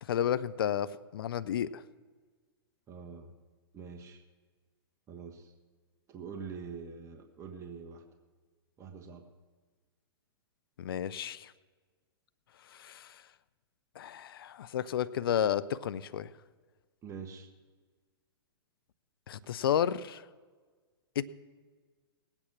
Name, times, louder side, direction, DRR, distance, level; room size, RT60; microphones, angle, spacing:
voice 1, 0.0-1.8 10.8-11.5 12.7-13.2 14.0-16.3 19.3-20.3 21.2-21.3, left 9 dB, 65° left, 15 dB, 0.6 m, -32 dB
voice 2, 2.9-3.3 3.7-4.2 5.1-5.5 6.1-8.0 8.8-9.3 17.0-17.5, right 5 dB, 20° right, 3 dB, 1.4 m, -45 dB
18.5 x 8.9 x 6.1 m, 1.4 s
hypercardioid pair, 115°, 13 cm